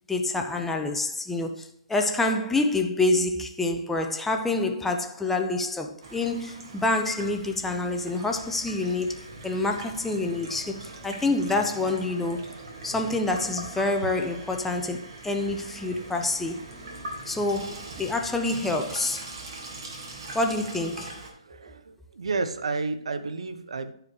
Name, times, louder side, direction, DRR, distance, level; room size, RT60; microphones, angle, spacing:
voice 1, 0.1-12.4 12.8-16.6 17.3-19.3 20.3-21.2, left 2 dB, 5° left, 0.6 m, -27 dB
Water tap faucet / Sink (filling or washing), 6.0-21.3, right 2 dB, 50° right, 1.8 m, -42 dB
voice 2, 21.2-23.9, right 3 dB, 75° right, 0.6 m, -31 dB
11.5 x 4.8 x 3.1 m
hypercardioid pair, 140°, 3 cm